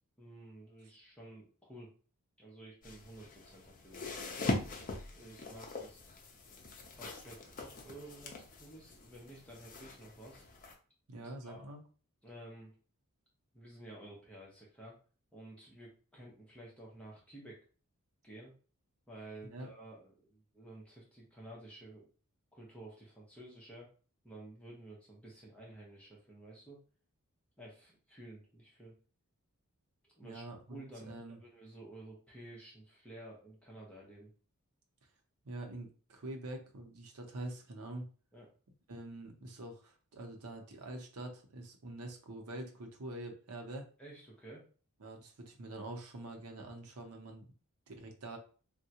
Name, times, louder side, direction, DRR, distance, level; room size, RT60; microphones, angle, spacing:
voice 1, 0.2-1.9 2.4-4.5 5.2-6.0 7.0-10.4 11.1-11.6 12.2-12.7 13.5-14.9 15.3-17.6 18.2-18.5 19.1-22.1 22.5-23.9 24.2-26.8 27.6-29.0 30.1-30.4 30.7-34.3 38.3-38.5 44.0-44.6, right 1 dB, 5° left, -4 dB, 0.8 m, -52 dB
sound 1, 2.8-10.7, left 2 dB, 40° left, 0.5 m, -42 dB
voice 2, 11.1-11.8 19.5-19.7 30.2-31.4 35.4-38.1 38.9-43.9 45.0-47.5 47.9-48.4, right 1 dB, 80° right, 3 dB, 0.7 m, -45 dB
3.6 x 2.2 x 2.8 m, 0.39 s
head